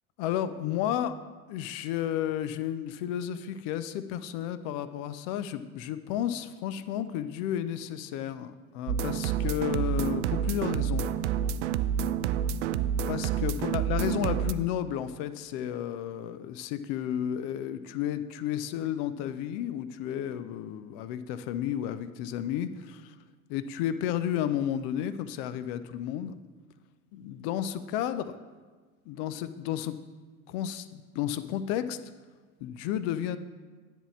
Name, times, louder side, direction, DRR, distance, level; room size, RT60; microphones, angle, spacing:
voice 1, 0.2-1.2 1.5-11.1 13.1-23.1 23.5-26.4 27.1-28.4 29.1-29.9 30.5-32.0 32.6-33.4, left 10 dB, 40° left, 13 dB, 0.5 m, -32 dB
sound 1, 8.9-14.5, right 8 dB, 55° right, 0.5 m, -28 dB
10.0 x 3.6 x 7.2 m, 1.4 s
figure-of-eight pair, 75°, 43 cm